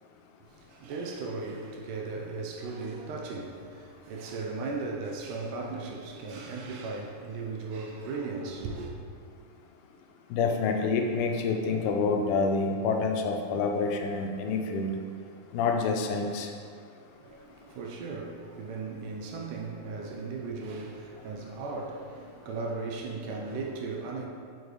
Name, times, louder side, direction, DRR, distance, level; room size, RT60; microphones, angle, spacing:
voice 1, 0.4-8.9 17.2-24.3, right 3 dB, 85° right, 2.2 m, -37 dB
voice 2, 10.3-15.0 15.5-16.5, left 4 dB, 85° left, 2.1 m, -27 dB
6.8 x 4.7 x 3.1 m
omnidirectional pair, 3.7 m